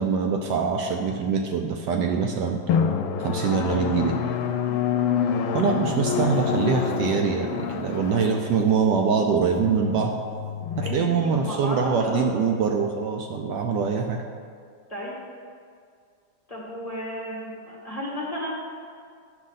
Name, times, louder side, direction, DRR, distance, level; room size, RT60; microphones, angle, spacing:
voice 1, 0.0-2.6 3.2-4.2 5.5-10.1 10.8-14.2, right 6 dB, 70° right, 3 dB, 1.1 m, -24 dB
Drum, 2.7-12.0, left 7 dB, 90° left, 1.3 m, -27 dB
voice 2, 4.5-5.2 10.8-12.2 14.9-15.1 16.5-18.5, equal, 20° left, -6 dB, 1.4 m, -34 dB
10.0 x 6.3 x 3.9 m, 2.1 s
omnidirectional pair, 2.1 m